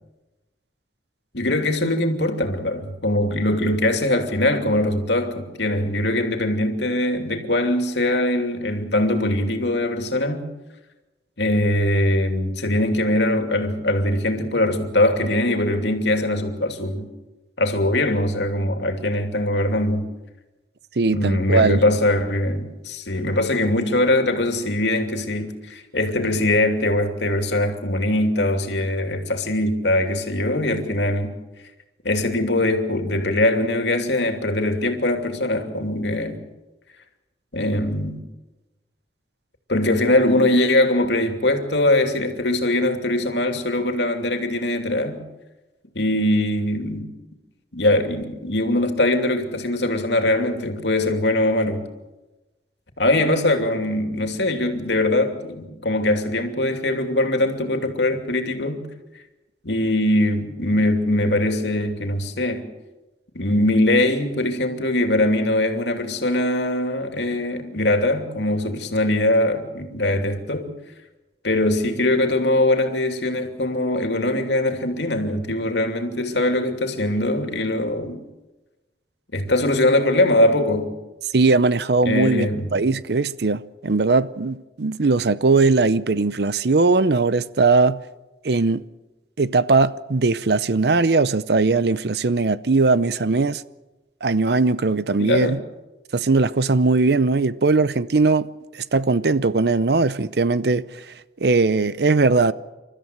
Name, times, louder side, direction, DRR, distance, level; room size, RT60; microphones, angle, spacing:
voice 1, 1.3-10.5 11.4-17.1 17.6-20.0 21.1-31.3 32.0-36.4 37.5-38.2 39.7-45.2 45.9-47.1 47.7-51.8 53.0-58.9 59.6-62.6 63.3-70.7 71.4-78.2 79.3-80.9 82.0-82.7 95.2-95.6, left 1 dB, 85° left, 2.7 m, -21 dB
voice 2, 21.0-21.8 81.3-88.0 88.4-88.8 89.4-93.6 94.2-95.6 96.1-98.5 98.9-100.8 101.4-102.5, right 3 dB, 65° right, 0.6 m, -19 dB
28.0 x 13.5 x 7.9 m
head